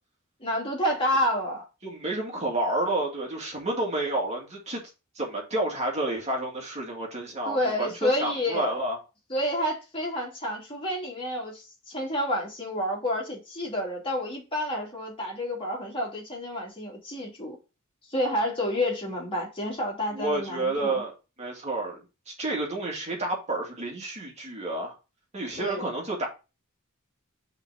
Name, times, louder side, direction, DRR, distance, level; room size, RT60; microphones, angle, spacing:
voice 1, 0.4-1.6 7.5-8.8 9.3-17.6 18.1-21.0 25.6-25.8, left 1 dB, 25° left, 2.6 m, -29 dB
voice 2, 1.8-4.8 5.2-9.0 20.1-21.1 21.4-25.0 25.3-26.3, right 2 dB, 30° right, 2.2 m, -30 dB
5.7 x 4.0 x 4.9 m
head